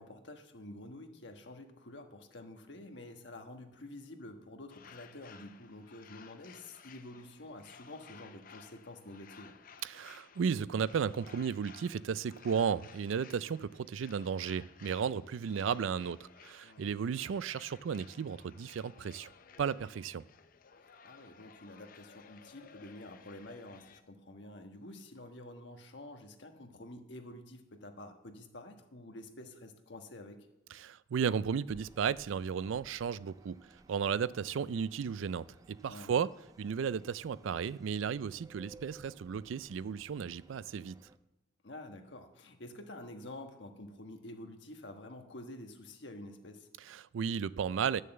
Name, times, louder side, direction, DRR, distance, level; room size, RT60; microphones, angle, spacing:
voice 1, 0.0-9.5 16.6-16.8 21.0-30.5 35.9-36.1 41.6-46.7, left 1 dB, 65° left, 1.3 m, -49 dB
sound 1, 4.7-24.0, left 6 dB, 45° left, 0.5 m, -57 dB
voice 2, 9.8-19.3 19.6-20.2 30.7-33.6 33.9-36.3 36.6-41.0 46.8-48.0, right 7 dB, 90° right, 0.4 m, -34 dB
sound 2, 31.7-41.2, right 2 dB, 20° right, 0.4 m, -60 dB
10.5 x 6.6 x 7.8 m
head